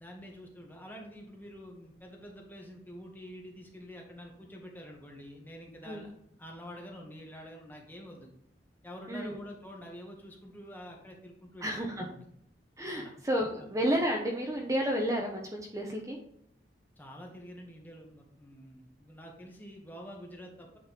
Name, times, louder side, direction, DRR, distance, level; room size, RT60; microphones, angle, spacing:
voice 1, 0.0-6.1 6.4-8.3 8.8-12.1 12.9-13.1 13.6-13.7 17.0-20.8, equal, 10° left, 1 dB, 1.4 m, -47 dB
voice 2, 11.6-12.1 12.8-16.2, equal, 20° right, 0 dB, 0.9 m, -31 dB
8.8 x 4.3 x 3.6 m, 0.72 s
head